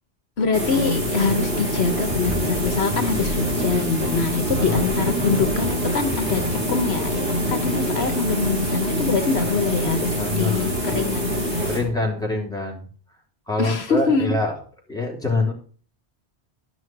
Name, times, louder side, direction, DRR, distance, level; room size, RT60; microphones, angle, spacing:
voice 1, 0.4-6.4 6.7-7.2 7.5-11.7 12.3-12.5 13.6-14.4, left 4 dB, 70° left, 8 dB, 1.3 m, -24 dB
sound 1, 0.5-12.2, equal, 50° right, 3.0 m, -25 dB
sound 2, 2.0-8.2, right 1 dB, 20° right, 1.5 m, -33 dB
voice 2, 4.4-4.9 10.2-10.9 11.6-12.8 13.5-14.5 14.9-15.5, left 2 dB, 5° left, -2 dB, 3.2 m, -25 dB
12.0 x 6.2 x 6.0 m, 0.43 s
omnidirectional pair, 1.1 m